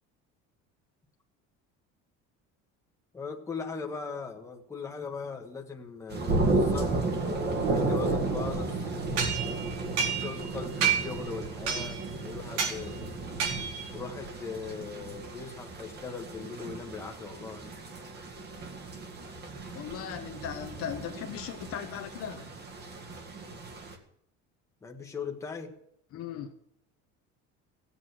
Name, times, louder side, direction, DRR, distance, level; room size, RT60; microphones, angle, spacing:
voice 1, 3.1-7.0 7.6-8.9 10.1-13.3 13.9-17.7 24.8-25.7, left 5 dB, 10° left, 1.4 m, -39 dB
sound 1, 6.1-23.9, right 3 dB, 30° right, 2.0 m, -33 dB
sound 2, 9.2-10.5 10.8-11.2 11.7-12.1 12.6-12.8 13.4-13.9, right 7 dB, 85° right, 4.2 m, -29 dB
voice 2, 19.7-22.4 26.1-26.5, left 8 dB, 45° left, 1.2 m, -38 dB
17.0 x 8.3 x 7.8 m
cardioid pair, 180°, 31 cm